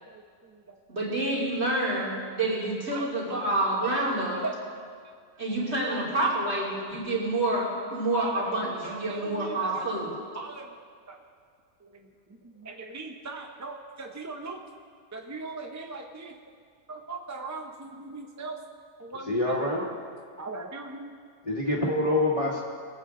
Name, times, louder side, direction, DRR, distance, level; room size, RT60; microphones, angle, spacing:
voice 1, 0.1-0.8 2.9-3.0 3.8-4.1 4.3-4.6 5.9-6.0 8.1-9.8 10.3-11.2 11.8-14.6 15.1-16.4 16.9-18.6 19.0-20.0 20.4-21.2, right 3 dB, 20° right, 2 dB, 0.4 m, -40 dB
voice 2, 0.9-4.4 5.4-10.1, right 2 dB, 50° right, -6 dB, 3.3 m, -28 dB
voice 3, 19.3-19.8 21.5-22.6, left 1 dB, 25° left, -4 dB, 1.2 m, -25 dB
21.5 x 8.0 x 3.7 m, 2.1 s
omnidirectional pair, 1.5 m